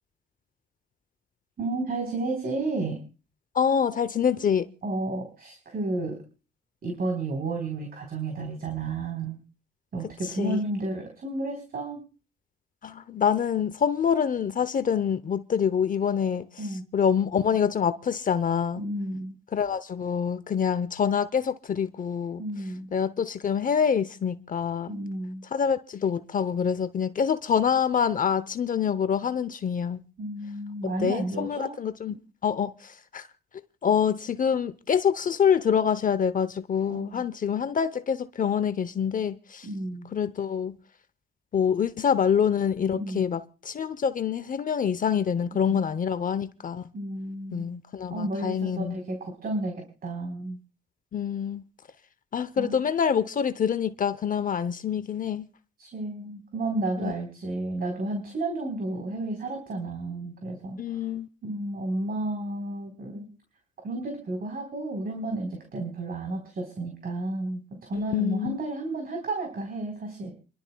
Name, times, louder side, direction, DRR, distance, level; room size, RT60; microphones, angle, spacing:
voice 1, 1.6-3.0 4.8-6.2 6.8-9.4 9.9-12.0 16.6-16.8 18.8-19.3 22.4-22.9 24.9-25.4 30.2-31.8 36.9-37.2 39.6-40.1 42.9-43.2 45.7-45.8 46.1-46.2 46.9-47.7 48.1-50.6 52.6-52.8 55.8-61.0 61.4-63.3 63.8-70.3, right 2 dB, 50° right, 3.9 m, -32 dB
voice 2, 3.5-4.7 10.4-10.6 12.8-16.5 16.9-18.8 19.5-22.4 22.9-24.9 25.5-30.0 30.8-32.2 32.4-33.3 33.8-39.7 40.1-40.8 41.5-46.8 47.5-49.0 51.1-51.6 52.3-55.5 57.0-57.1 60.8-61.3 68.1-68.6, left 7 dB, 45° left, 0.7 m, -26 dB
29.0 x 12.0 x 2.3 m
cardioid pair, 90°, 20 cm